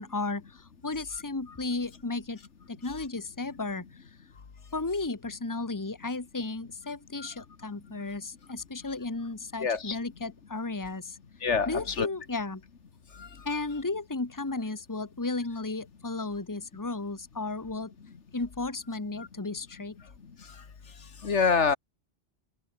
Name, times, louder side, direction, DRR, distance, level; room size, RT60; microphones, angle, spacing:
voice 1, 0.0-2.4 2.7-4.0 4.7-11.2 11.7-12.6 13.4-17.9 18.3-20.0, left 3 dB, 15° left, 1.4 m, -34 dB
voice 2, 9.6-10.0 11.4-12.1 13.2-13.3 19.2-19.3 21.2-21.8, left 5 dB, 85° left, 1.9 m, -26 dB
open air
omnidirectional pair, 1.2 m